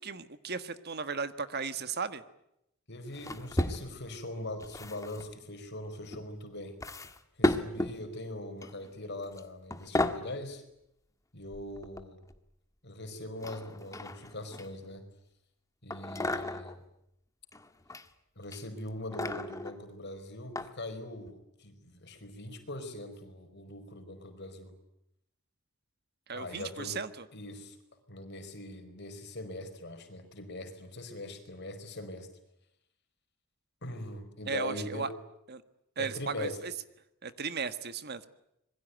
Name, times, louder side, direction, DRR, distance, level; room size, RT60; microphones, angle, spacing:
voice 1, 0.0-2.2 26.3-27.2 34.5-35.1 35.5-35.6 36.0-36.7 37.2-38.3, right 5 dB, 50° right, 12 dB, 1.5 m, -36 dB
voice 2, 2.9-6.8 7.4-10.6 11.3-12.2 12.8-15.0 15.8-16.8 18.4-24.7 26.3-27.0 27.3-27.8 28.1-32.3 33.8-35.1 36.0-36.6, left 1 dB, 50° left, 7 dB, 5.0 m, -41 dB
sound 1, 3.1-4.2 4.6-5.3 6.1-6.2 6.8-8.0 8.6-8.9 9.2-9.4 9.7-10.3 11.5-12.4 13.4-14.9 15.9-16.8 17.5-18.1 18.4-19.8 20.6-20.7 21.3-21.4, left 1 dB, 15° left, 1.6 m, -34 dB
26.5 x 22.0 x 9.3 m, 0.80 s
head